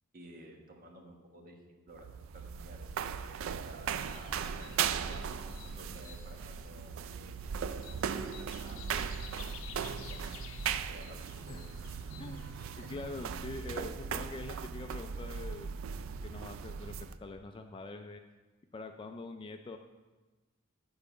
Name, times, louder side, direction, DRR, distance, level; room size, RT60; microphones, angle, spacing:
voice 1, 0.1-7.4 7.7-8.1 8.4-9.0 9.9-10.6 10.9-12.1 12.8-12.9, right 1 dB, 45° right, 1 dB, 1.2 m, -54 dB
sound 1, 1.9-17.2, right 7 dB, 75° right, 0.3 m, -38 dB
sound 2, 4.0-13.4, left 6 dB, 80° left, 0.6 m, -52 dB
voice 2, 12.8-15.7 16.2-18.2 18.7-19.8, left 3 dB, 25° left, 6 dB, 0.3 m, -44 dB
7.0 x 4.9 x 6.6 m, 1.2 s
head